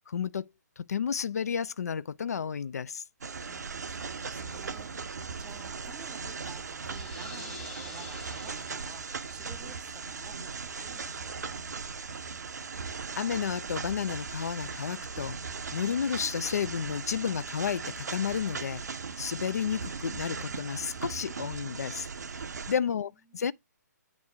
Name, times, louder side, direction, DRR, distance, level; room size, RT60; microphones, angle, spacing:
voice 1, 0.1-0.5 0.8-3.0 13.2-15.4 15.7-18.8 19.2-23.5, left 7 dB, 60° left, 0.3 m, -32 dB
sound 1, 3.2-22.8, right 5 dB, 70° right, 0.6 m, -38 dB
voice 2, 3.4-11.7 22.8-23.5, right 7 dB, 10° right, 0.5 m, -53 dB
sound 2, 6.9-9.4, left 4 dB, 5° left, 0.9 m, -47 dB
8.6 x 3.1 x 4.9 m
figure-of-eight pair, 135°, 10 cm